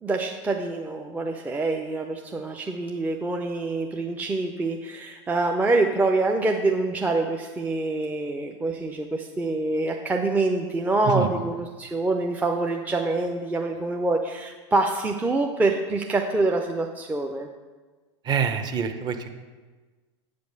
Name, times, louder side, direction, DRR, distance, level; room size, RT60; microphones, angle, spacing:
voice 1, 0.0-17.5, right 2 dB, 10° right, 2 dB, 0.5 m, -26 dB
voice 2, 18.2-19.3, right 6 dB, 30° right, 7 dB, 0.9 m, -26 dB
8.6 x 5.2 x 6.6 m, 1.3 s
supercardioid pair, 130°, 15 cm